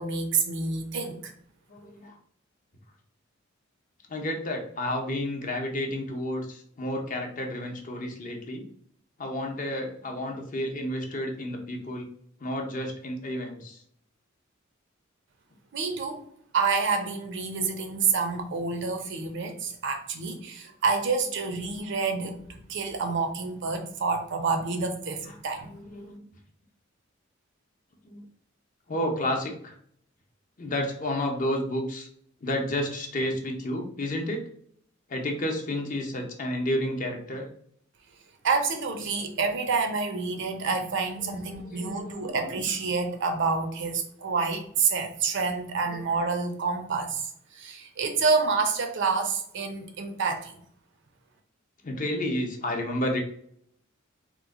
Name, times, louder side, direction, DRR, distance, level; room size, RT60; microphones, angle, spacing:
voice 1, 0.0-1.3 15.7-16.2 16.5-25.7 38.4-50.5, right 4 dB, 60° right, 6 dB, 0.6 m, -28 dB
voice 2, 1.7-2.2 4.1-8.7 9.2-12.1 12.4-13.8 25.2-26.3 28.0-28.2 28.9-29.7 30.6-32.1 32.4-34.4 35.1-37.5 39.1-39.2 41.3-42.6 45.8-46.0 51.8-53.2, left 1 dB, 40° left, 2 dB, 0.6 m, -31 dB
3.0 x 2.1 x 3.5 m, 0.63 s
head